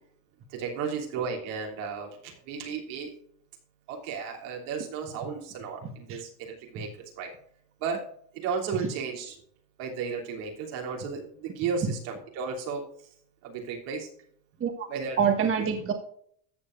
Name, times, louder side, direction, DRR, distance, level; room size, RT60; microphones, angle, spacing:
voice 1, 0.5-3.1 3.9-6.9 7.2-7.3 7.8-8.0 8.4-9.3 9.8-12.8 13.4-14.1 14.9-15.5, right 5 dB, 80° right, 0 dB, 3.1 m, -34 dB
voice 2, 15.2-15.9, right 7 dB, 35° right, 4 dB, 1.4 m, -26 dB
14.0 x 7.4 x 2.5 m, 0.63 s
supercardioid pair, 120°, 39 cm